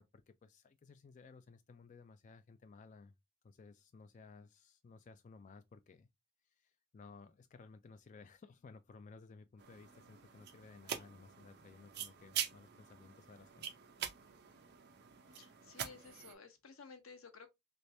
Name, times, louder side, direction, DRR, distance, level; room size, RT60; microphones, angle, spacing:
voice 1, 0.0-3.1 3.4-6.1 6.5-13.7, left 4 dB, 35° left, 0.3 m, -58 dB
sound 1, 9.6-16.3, right 9 dB, 55° right, 0.6 m, -45 dB
voice 2, 15.4-17.5, left 5 dB, 85° left, 0.8 m, -55 dB
3.3 x 3.2 x 2.6 m
head